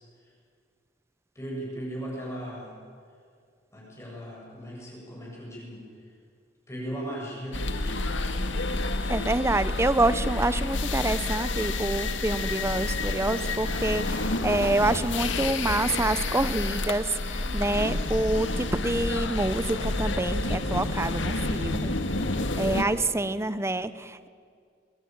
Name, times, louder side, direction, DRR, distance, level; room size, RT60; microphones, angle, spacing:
voice 1, 1.3-2.7 3.7-6.1 6.7-7.8, right 1 dB, 15° left, -4 dB, 7.7 m, -37 dB
sound 1, 7.5-22.8, left 2 dB, 90° left, 1.9 m, -29 dB
voice 2, 9.1-21.9 22.6-24.3, right 2 dB, 15° right, 14 dB, 0.8 m, -27 dB
24.0 x 21.0 x 9.3 m, 2.2 s
head